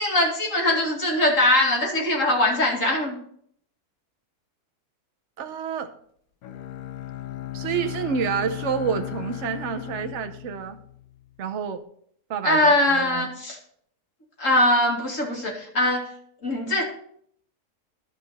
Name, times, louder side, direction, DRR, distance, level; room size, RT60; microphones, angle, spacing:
voice 1, 0.0-3.2 12.4-13.6 14.4-16.1 16.4-16.8, left 1 dB, 55° left, -1 dB, 2.7 m, -21 dB
voice 2, 5.4-5.9 7.5-10.8 11.4-11.8 12.3-13.3, right 7 dB, 55° right, 7 dB, 1.0 m, -29 dB
Bowed string instrument, 6.4-11.4, left 14 dB, 75° left, 1.2 m, -36 dB
14.5 x 5.0 x 4.2 m, 0.65 s
omnidirectional pair, 1.6 m